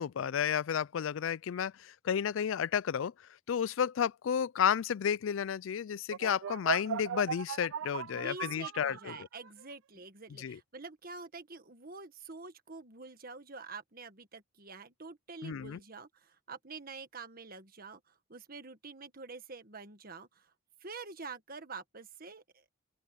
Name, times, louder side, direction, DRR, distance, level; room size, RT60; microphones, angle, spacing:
voice 1, 0.0-9.1 10.4-10.6 15.4-15.8, left 8 dB, 70° left, 0.4 m, -32 dB
sound 1, 6.1-9.6, right 7 dB, 65° right, 0.3 m, -38 dB
voice 2, 8.1-20.5 20.8-22.6, right 4 dB, 45° right, 1.5 m, -47 dB
open air
head